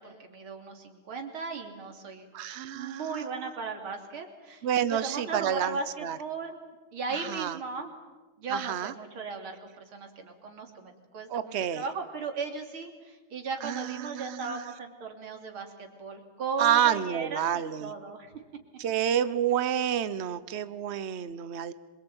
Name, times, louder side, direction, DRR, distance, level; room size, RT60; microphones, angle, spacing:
voice 1, 0.0-2.3 2.7-6.6 6.9-7.9 8.4-17.5 17.8-18.3, right 4 dB, 70° right, 4 dB, 3.8 m, -36 dB
voice 2, 2.3-3.2 4.6-6.2 7.1-7.6 8.5-8.9 11.3-11.8 13.6-14.7 16.6-17.9 18.8-21.7, right 10 dB, 45° right, 14 dB, 0.8 m, -29 dB
26.5 x 22.5 x 8.9 m, 1.3 s
omnidirectional pair, 2.4 m